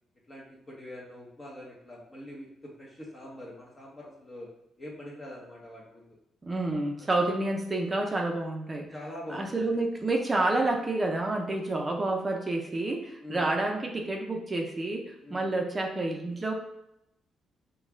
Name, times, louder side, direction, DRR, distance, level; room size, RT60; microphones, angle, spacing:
voice 1, 0.3-4.5 4.8-6.2 7.0-7.1 8.9-9.7 13.2-13.5 15.2-15.5, left 1 dB, 30° left, -4 dB, 1.1 m, -44 dB
voice 2, 6.4-8.9 9.3-16.5, right 2 dB, 25° right, 1 dB, 0.7 m, -29 dB
5.2 x 2.3 x 3.7 m, 0.82 s
cardioid pair, 90°, 0 cm